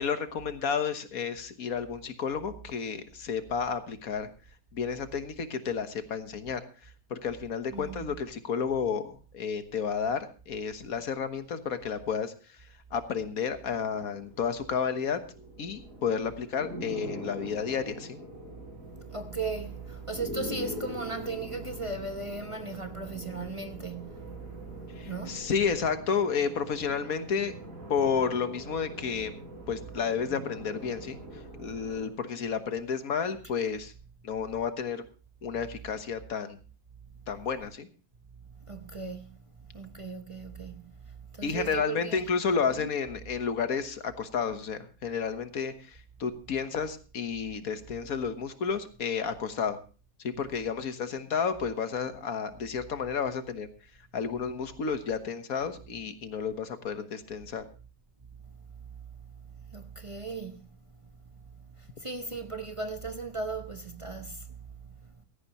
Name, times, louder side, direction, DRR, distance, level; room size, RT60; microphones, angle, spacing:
voice 1, 0.0-4.3 4.7-12.3 12.9-15.2 15.6-18.2 25.0-27.5 27.9-29.3 29.7-33.9 34.2-35.0 35.4-36.6 37.3-37.9 41.4-49.8 50.2-53.7 54.1-57.6, left 6 dB, 80° left, 1.7 m, -31 dB
voice 2, 7.7-8.2 18.8-25.5 37.1-37.2 38.5-42.2 42.8-42.9 58.4-65.2, right 3 dB, 25° right, 0.8 m, -38 dB
sound 1, 13.6-32.1, equal, 70° right, 4.1 m, -43 dB
16.5 x 13.5 x 3.0 m
omnidirectional pair, 1.5 m